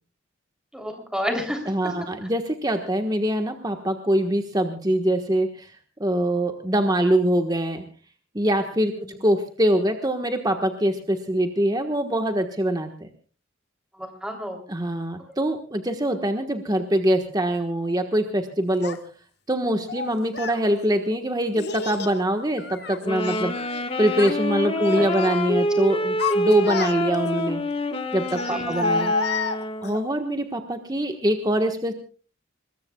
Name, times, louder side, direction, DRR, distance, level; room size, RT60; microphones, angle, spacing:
voice 1, 0.7-1.9 9.0-9.2 13.9-14.6 24.9-25.0 28.4-28.7, equal, 5° right, 3 dB, 3.2 m, -31 dB
voice 2, 1.7-5.7 6.0-7.8 8.3-8.9 9.2-13.1 14.7-19.0 19.5-23.5 24.0-27.6 28.1-29.1 29.8-31.9, right 1 dB, 20° right, 5 dB, 1.3 m, -23 dB
Child speech kid speaking, 18.8-19.0 19.9-20.6 21.6-22.2 22.6-23.8 24.1-24.4 24.8-25.4 25.9-27.3 28.3-30.0, left 4 dB, 55° left, 1.4 m, -29 dB
sound 1, 23.0-30.1, left 1 dB, 30° left, 1.5 m, -27 dB
26.0 x 21.0 x 2.3 m, 0.38 s
head